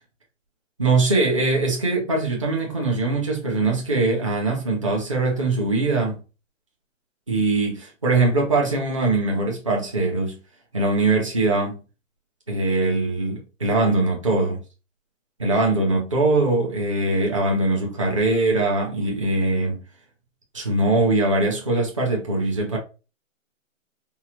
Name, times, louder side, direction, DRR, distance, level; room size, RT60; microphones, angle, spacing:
voice 1, 0.8-6.2 7.3-10.4 10.7-11.8 12.5-14.6 15.4-19.8 20.5-22.8, right 2 dB, 25° right, 0.7 m, -22 dB
4.7 x 2.2 x 2.8 m
hypercardioid pair, 180°, 39 cm